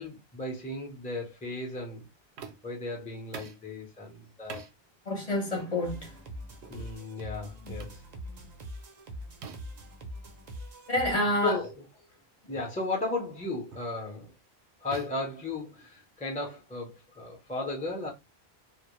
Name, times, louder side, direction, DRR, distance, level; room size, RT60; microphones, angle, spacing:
voice 1, 0.0-2.1 2.6-4.7 6.7-8.0 11.4-11.7 12.5-14.3 14.8-18.1, left 2 dB, 10° left, 0.5 m, -35 dB
sound 1, 2.4-2.8 3.3-3.7 4.5-4.7 5.6-5.8 6.6-6.8 7.8-8.0 9.4-9.8 11.0-11.2 11.6-11.8 12.5-12.8 13.7-14.0 14.9-16.1, right 5 dB, 85° right, 0.8 m, -45 dB
voice 2, 5.1-6.2 7.6-7.7 8.3-8.6 10.9-11.6 12.4-12.5, left 1 dB, 40° left, 0.8 m, -29 dB
sound 2, 5.8-11.1, equal, 50° right, 0.5 m, -43 dB
2.1 x 2.0 x 2.9 m
omnidirectional pair, 1.1 m